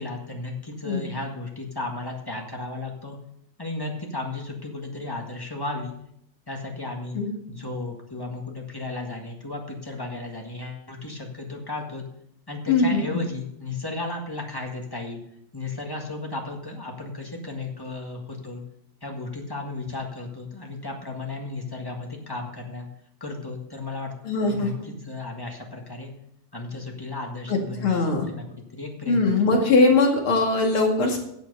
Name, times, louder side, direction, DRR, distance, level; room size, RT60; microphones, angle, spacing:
voice 1, 0.0-3.2 3.6-5.9 6.5-7.2 7.5-12.0 12.5-15.2 15.5-18.6 19.0-22.9 23.2-24.1 24.5-26.1 26.5-29.6, left 2 dB, 15° left, 1 dB, 0.7 m, -34 dB
voice 2, 12.7-13.0 24.2-24.7 27.5-28.3 29.1-31.2, left 3 dB, 50° left, 1 dB, 2.7 m, -21 dB
10.5 x 7.9 x 6.7 m, 0.73 s
omnidirectional pair, 3.3 m